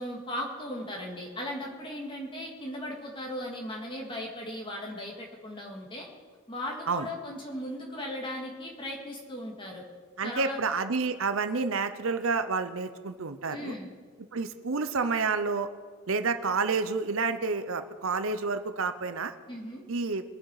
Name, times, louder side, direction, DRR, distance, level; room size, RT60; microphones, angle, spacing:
voice 1, 0.0-6.1 6.5-9.8 10.2-10.6 13.5-13.9 19.5-19.8, left 1 dB, 20° left, 0 dB, 2.3 m, -37 dB
voice 2, 10.2-13.7 14.3-15.7 16.1-19.3 19.9-20.2, right 4 dB, 60° right, 10 dB, 0.7 m, -29 dB
23.0 x 7.9 x 4.9 m, 1.6 s
head